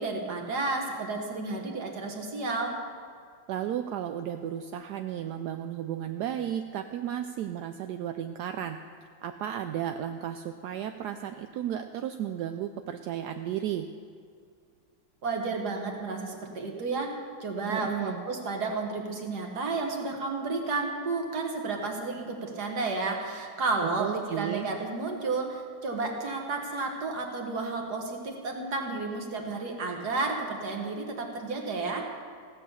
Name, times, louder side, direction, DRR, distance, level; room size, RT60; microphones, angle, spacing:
voice 1, 0.0-2.7 15.2-17.1 17.4-32.1, right 3 dB, 55° right, 2 dB, 2.0 m, -32 dB
voice 2, 3.5-8.8 9.2-13.9 17.7-18.3 24.0-24.7, right 10 dB, 75° right, 7 dB, 0.9 m, -34 dB
16.0 x 7.3 x 6.9 m, 2.2 s
omnidirectional pair, 2.2 m